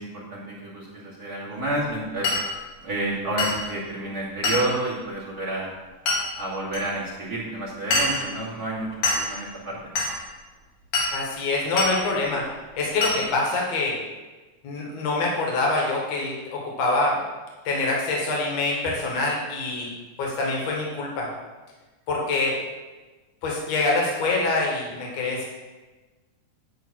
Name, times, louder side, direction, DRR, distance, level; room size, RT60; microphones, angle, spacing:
voice 1, 0.0-2.3 2.8-5.7 6.4-9.8, right 1 dB, 30° right, -7 dB, 2.6 m, -30 dB
Glass, 2.2-2.5 3.4-3.6 4.4-4.7 6.1-6.2 6.7-6.8 7.9-8.3 9.0-9.3 10.0-10.2 10.9-11.2 11.8-12.0 13.0-13.2, left 2 dB, 85° left, 3.5 m, -24 dB
voice 2, 11.1-12.4 12.8-13.9 14.6-17.2 17.6-19.9 20.2-21.3 22.1-22.5 23.4-25.5, left 2 dB, 60° left, -2 dB, 2.8 m, -25 dB
10.5 x 3.9 x 7.4 m, 1.2 s
omnidirectional pair, 3.4 m